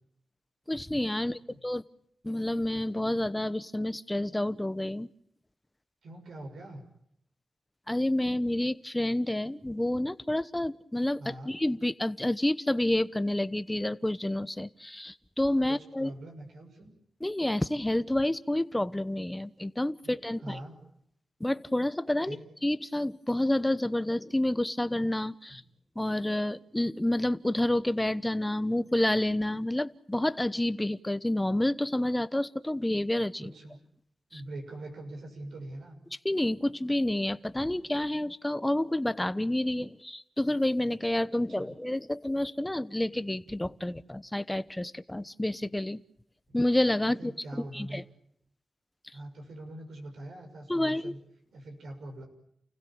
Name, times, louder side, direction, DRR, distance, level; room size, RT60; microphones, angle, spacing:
voice 1, 0.7-1.8 2.2-5.1 7.9-16.1 17.2-20.6 21.4-22.4 22.6-25.6 26.0-33.5 34.3-34.4 36.2-46.0 46.5-47.3 47.7-48.0 50.7-51.1, left 1 dB, 15° left, 14 dB, 1.0 m, -29 dB
voice 2, 1.2-1.6 6.0-6.8 11.2-11.5 15.7-16.9 20.0-20.1 20.4-20.7 22.2-22.4 25.5-25.6 33.4-33.8 34.3-36.0 39.7-39.8 41.6-41.7 47.0-48.0 49.1-51.2 51.5-52.2, right 1 dB, 85° right, 3 dB, 6.4 m, -43 dB
29.5 x 16.0 x 8.8 m, 0.72 s
cardioid pair, 65°, 0 cm